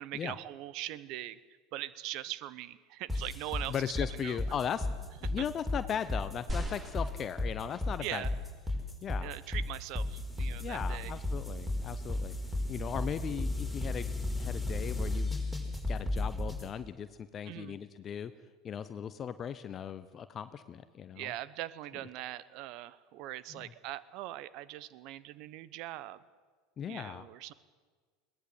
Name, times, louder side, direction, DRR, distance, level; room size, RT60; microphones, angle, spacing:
voice 1, 0.0-1.4 1.7-4.4 5.2-5.3 8.0-8.3 9.2-11.1 17.4-17.8 21.2-26.2 26.8-27.5, right 15 dB, 55° right, 18 dB, 1.0 m, -41 dB
sound 1, 3.1-16.7, left 2 dB, ahead, 4.8 m, -34 dB
voice 2, 3.7-8.2 9.0-9.3 10.6-12.3 12.7-14.1 14.3-15.4 15.9-18.3 18.6-21.3 23.5-23.7 26.8-27.2, left 8 dB, 35° left, 12 dB, 0.9 m, -38 dB
sound 2, 6.5-8.0 8.8-8.9, right 1 dB, 15° right, 4.4 m, -42 dB
21.5 x 18.0 x 8.0 m, 1.5 s
hypercardioid pair, 80°, 0 cm